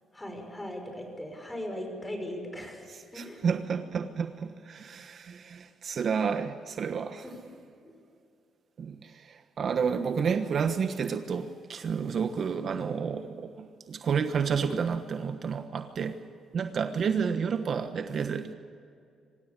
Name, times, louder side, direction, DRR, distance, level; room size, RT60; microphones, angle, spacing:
voice 1, 0.1-2.9 3.1-3.5 7.2-7.4 7.8-7.9, left 1 dB, 15° left, 4 dB, 6.3 m, -38 dB
voice 2, 3.1-7.2 8.8-16.2 16.5-18.5, right 6 dB, 55° right, 9 dB, 1.2 m, -30 dB
25.5 x 16.5 x 8.4 m, 2.4 s
cardioid pair, 90°, 0 cm